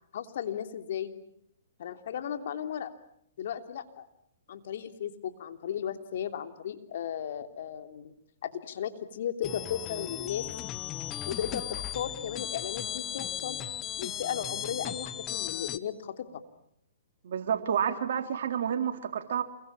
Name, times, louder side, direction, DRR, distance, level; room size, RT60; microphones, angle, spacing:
voice 1, 0.1-1.1 1.8-2.9 3.4-4.1 4.5-8.1 8.4-10.5 11.3-13.6 14.0-16.4, left 9 dB, 65° left, 7 dB, 3.1 m, -35 dB
sound 1, 9.4-15.8, left 11 dB, 25° left, 1.3 m, -36 dB
voice 2, 17.2-19.4, right 8 dB, 65° right, 6 dB, 3.6 m, -29 dB
28.5 x 23.0 x 8.8 m, 0.73 s
hypercardioid pair, 130°, 0 cm